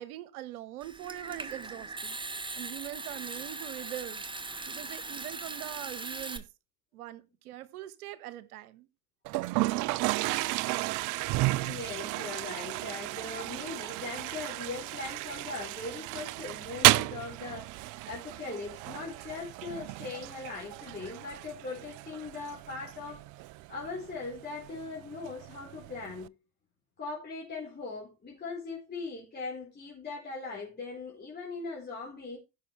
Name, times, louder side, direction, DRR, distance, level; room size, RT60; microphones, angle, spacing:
voice 1, 0.0-2.2 2.6-4.2 4.7-6.5 6.9-8.9, right 14 dB, 70° right, 1.2 m, -42 dB
Water tap faucet / Sink (filling or washing) / Trickle dribble, 0.8-6.4, right 3 dB, 10° right, 1.4 m, -40 dB
Toilet flush, 9.3-26.3, right 20 dB, 45° right, 0.5 m, -33 dB
voice 2, 11.6-23.2 23.7-26.3 27.0-32.4, left 4 dB, 20° left, 4.2 m, -40 dB
15.5 x 6.6 x 3.2 m
figure-of-eight pair, 65°, 46 cm